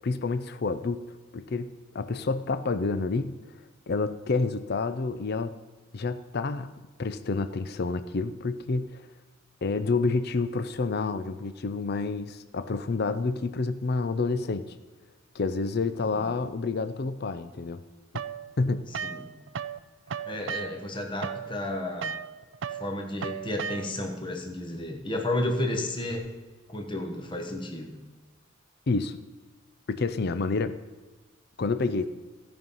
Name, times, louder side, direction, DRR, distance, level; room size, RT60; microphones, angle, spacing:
voice 1, 0.0-1.0 1.3-3.4 3.9-5.5 5.9-6.7 7.0-9.1 9.6-14.8 15.3-17.8 18.6-18.9 28.9-29.2 29.9-30.8 31.6-32.1, left 3 dB, 50° left, 12 dB, 0.5 m, -29 dB
sound 1, 18.2-19.8 20.1-24.2, right 7 dB, 65° right, 0.4 m, -36 dB
voice 2, 20.3-22.1 22.7-26.3 26.7-27.9, left 1 dB, 25° left, 3 dB, 1.1 m, -32 dB
16.0 x 5.4 x 5.5 m, 1.3 s
head